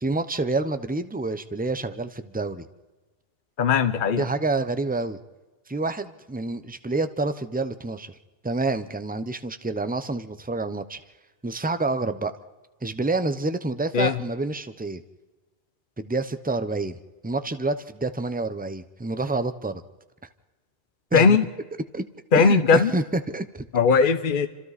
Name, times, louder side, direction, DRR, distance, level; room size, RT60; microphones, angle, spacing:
voice 1, 0.0-2.6 4.2-5.2 5.7-8.1 8.4-11.0 11.4-12.3 12.8-15.0 16.0-17.0 17.2-19.8 21.1-21.4 21.9-22.0 22.3-23.7, right 2 dB, 10° right, 10 dB, 0.8 m, -28 dB
voice 2, 3.6-4.2 13.9-14.1 21.1-21.4 22.3-22.9 23.7-24.5, left 5 dB, 55° left, 9 dB, 1.0 m, -18 dB
29.0 x 26.5 x 4.2 m, 1.2 s
omnidirectional pair, 1.1 m